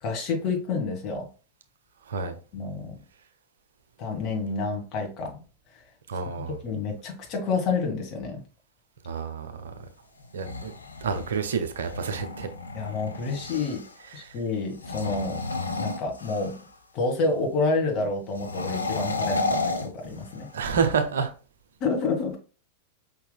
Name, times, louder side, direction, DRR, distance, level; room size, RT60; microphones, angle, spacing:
voice 1, 0.0-1.3 2.5-3.0 4.0-5.4 6.6-8.4 12.7-13.9 14.1-15.4 15.8-16.6 16.9-20.5 21.8-22.4, left 3 dB, 40° left, 1.8 m, -28 dB
voice 2, 6.1-6.6 9.1-9.5 10.3-10.7 11.0-12.5 14.1-14.4 20.5-21.3, right 5 dB, 65° right, 0.7 m, -28 dB
sound 1, 10.2-14.0 14.7-16.8 18.3-20.6, left 3 dB, 75° left, 0.5 m, -32 dB
5.4 x 4.0 x 2.2 m
figure-of-eight pair, 90°, 0 cm